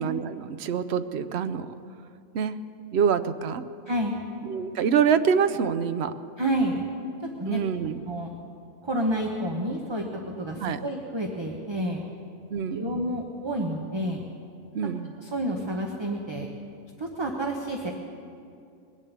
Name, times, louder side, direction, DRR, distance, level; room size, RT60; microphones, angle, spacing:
voice 1, 0.0-1.7 2.3-2.6 2.9-3.6 4.5-6.1 7.5-8.0 10.6-10.8 12.5-13.0 14.7-15.1, right 7 dB, 60° right, 11 dB, 0.8 m, -26 dB
voice 2, 3.9-4.2 6.4-6.9 7.4-7.6 8.1-8.3 8.8-10.1 10.4-12.0 12.7-14.2 15.2-16.5 17.0-17.9, right 1 dB, 20° right, 1 dB, 0.9 m, -29 dB
21.0 x 7.4 x 8.2 m, 2.5 s
omnidirectional pair, 1.4 m